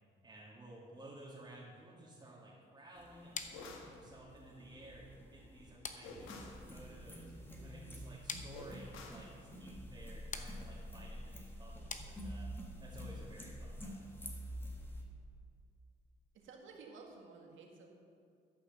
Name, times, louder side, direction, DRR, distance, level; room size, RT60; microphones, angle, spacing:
voice 1, 0.2-7.3 7.6-12.5 12.8-14.1, right 1 dB, 20° right, -7 dB, 2.4 m, -55 dB
sound 1, 3.0-15.0, equal, 10° left, 1.7 m, -48 dB
sound 2, 3.3-12.7, left 5 dB, 40° left, 0.9 m, -50 dB
sound 3, 3.5-4.0 6.0-6.6 8.5-9.3, left 3 dB, 90° left, 1.3 m, -50 dB
voice 2, 16.3-17.9, right 4 dB, 75° right, 1 dB, 1.9 m, -54 dB
12.0 x 5.6 x 6.9 m, 2.4 s
cardioid pair, 90°, 20 cm